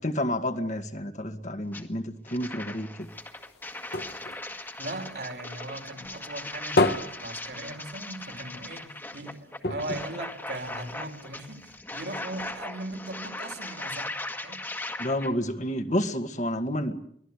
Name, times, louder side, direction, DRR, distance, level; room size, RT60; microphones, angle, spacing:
voice 1, 0.0-3.1 15.0-17.0, left 1 dB, 45° left, 7 dB, 1.9 m, -30 dB
sound 1, 1.7-1.8 2.2-15.3, left 2 dB, 10° left, 1.7 m, -39 dB
sound 2, 3.0-5.7 6.0-8.3 8.6-8.7 9.0-9.1 9.6-11.1 11.7-11.8, left 2 dB, 65° left, 1.5 m, -30 dB
voice 2, 4.8-14.1 14.4-14.6, right 2 dB, 65° right, 5 dB, 3.7 m, -39 dB
24.0 x 17.0 x 9.8 m, 0.71 s
head